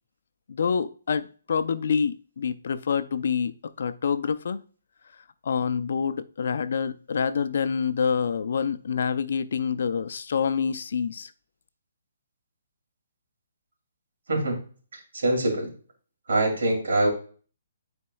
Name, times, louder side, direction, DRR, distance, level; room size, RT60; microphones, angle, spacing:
voice 1, 0.5-4.6 5.4-11.3, left 6 dB, 65° left, 0.5 m, -27 dB
voice 2, 14.9-15.7 16.3-17.1, right 1 dB, 75° right, 2.7 m, -24 dB
9.5 x 4.4 x 2.3 m
hypercardioid pair, 160°, 0 cm